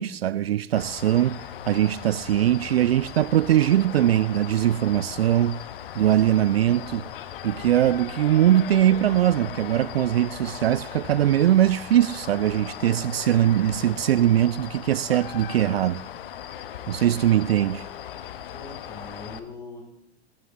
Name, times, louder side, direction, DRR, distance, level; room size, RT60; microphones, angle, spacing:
voice 1, 0.0-1.4 1.7-5.6 6.0-7.0 7.4-16.0 16.9-17.9, right 12 dB, 65° right, 0.5 m, -21 dB
sound 1, 0.7-19.4, left 10 dB, 55° left, 1.2 m, -38 dB
voice 2, 18.5-19.9, left 3 dB, 10° left, 5.7 m, -41 dB
20.5 x 14.5 x 3.5 m
figure-of-eight pair, 95°, 33 cm